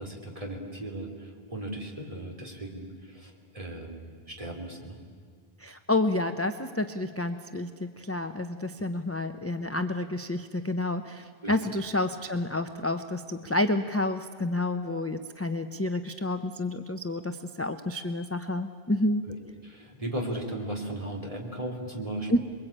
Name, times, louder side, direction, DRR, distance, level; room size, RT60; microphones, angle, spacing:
voice 1, 0.0-5.0 11.4-11.6 19.3-19.4 19.6-22.4, right 1 dB, 35° right, 0 dB, 3.5 m, -37 dB
voice 2, 5.6-19.2 22.3-22.4, left 2 dB, 15° left, 8 dB, 0.6 m, -29 dB
28.0 x 22.0 x 8.7 m, 2.1 s
omnidirectional pair, 1.0 m